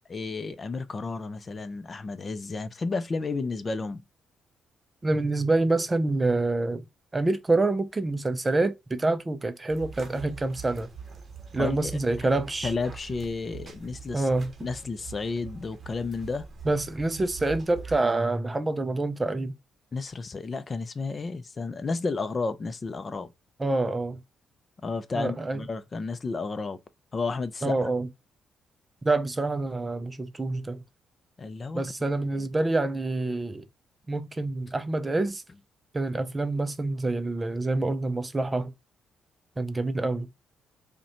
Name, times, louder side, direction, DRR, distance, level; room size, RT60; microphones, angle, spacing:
voice 1, 0.1-4.0 11.6-12.3 12.6-14.3 14.6-16.5 19.9-23.3 24.8-26.8 27.1-27.9 31.4-31.9 32.3-32.5, left 4 dB, 35° left, 0.5 m, -32 dB
voice 2, 5.0-6.9 7.1-10.9 11.5-12.7 14.1-14.5 16.7-19.5 23.6-24.2 25.2-25.6 27.6-28.1 29.0-30.8 31.7-33.7 34.1-35.4 35.9-38.7 39.6-40.3, right 2 dB, 20° right, 0.4 m, -27 dB
sound 1, 9.7-18.0, right 6 dB, 40° right, 0.8 m, -43 dB
5.3 x 2.2 x 2.8 m
cardioid pair, 90°, 0 cm